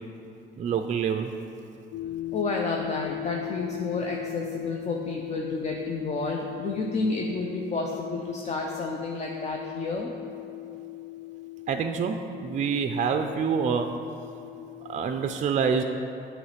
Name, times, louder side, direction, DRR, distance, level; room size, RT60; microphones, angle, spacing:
voice 1, 0.6-1.3 11.7-13.9 14.9-15.8, right 6 dB, 40° right, 6 dB, 0.4 m, -26 dB
sound 1, 1.9-15.1, left 18 dB, 75° left, 0.4 m, -38 dB
voice 2, 2.3-10.1, left 3 dB, 35° left, 0 dB, 0.6 m, -30 dB
9.3 x 3.1 x 5.7 m, 2.7 s
cardioid pair, 90°, 20 cm